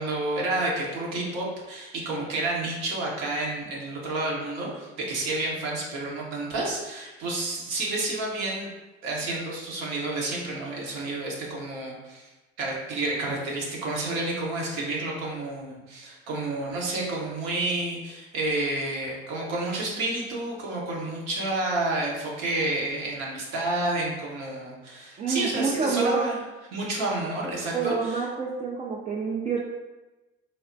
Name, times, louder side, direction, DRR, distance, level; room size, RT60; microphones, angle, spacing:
voice 1, 0.0-8.7 9.0-12.3 12.6-26.3 26.7-28.2, right 2 dB, 60° right, -2 dB, 0.9 m, -30 dB
voice 2, 25.2-26.3 27.7-29.6, right 5 dB, 25° right, -3 dB, 0.3 m, -27 dB
3.2 x 2.1 x 2.5 m, 1.1 s
hypercardioid pair, 65°, 30 cm